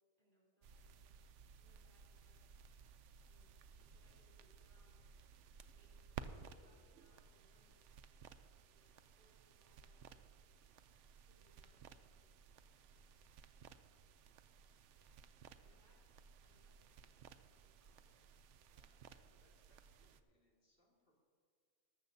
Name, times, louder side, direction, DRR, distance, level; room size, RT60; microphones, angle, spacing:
voice 1, 0.2-1.0 1.6-2.5 3.2-5.0 5.7-7.9 8.7-8.9 9.2-10.2 11.3-12.3 13.0-13.1 14.9-15.2 15.5-16.0 16.4-18.3, equal, 40° right, -5 dB, 3.8 m, -76 dB
sound 1, 0.6-20.2, right 7 dB, 85° right, 0.9 m, -58 dB
voice 2, 8.2-9.0 12.9-13.3 15.6-15.9 18.6-21.2, left 1 dB, 50° left, -3 dB, 2.4 m, -78 dB
sound 2, 10.6-18.4, right 3 dB, 65° right, 1.6 m, -84 dB
19.0 x 13.5 x 2.7 m, 2.1 s
omnidirectional pair, 1.2 m